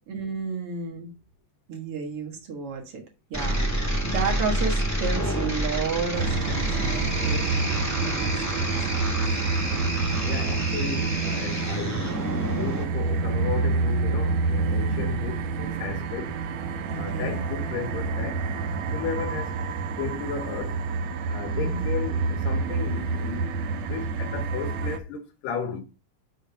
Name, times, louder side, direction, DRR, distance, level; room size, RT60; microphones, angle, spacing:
voice 1, 0.1-1.1 1.7-3.0 3.3-8.8 9.2-9.4 14.9-15.0 16.9-17.4 21.5-21.8, right 5 dB, 50° right, 2.1 m, -32 dB
sound 1, 3.3-12.8, equal, 10° left, 1.1 m, -29 dB
sound 2, 6.1-25.0, right 4 dB, 70° right, 1.7 m, -28 dB
voice 2, 10.2-16.4 16.9-18.5 18.9-19.6 20.0-20.8 21.3-23.5 23.8-25.8, left 6 dB, 85° left, 3.0 m, -34 dB
6.7 x 3.7 x 5.5 m
omnidirectional pair, 3.7 m